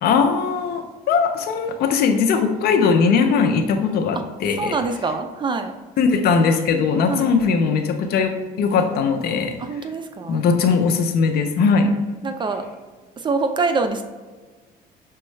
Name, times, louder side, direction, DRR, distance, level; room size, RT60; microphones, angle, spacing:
voice 1, 0.0-4.2 4.4-4.7 6.0-9.6 10.3-11.9, left 5 dB, 70° left, 6 dB, 0.6 m, -19 dB
voice 2, 4.6-5.7 7.1-7.3 9.6-10.4 12.2-12.6 13.2-14.0, right 4 dB, 30° right, 7 dB, 0.4 m, -24 dB
6.1 x 2.3 x 3.2 m, 1.3 s
cardioid pair, 110°, 17 cm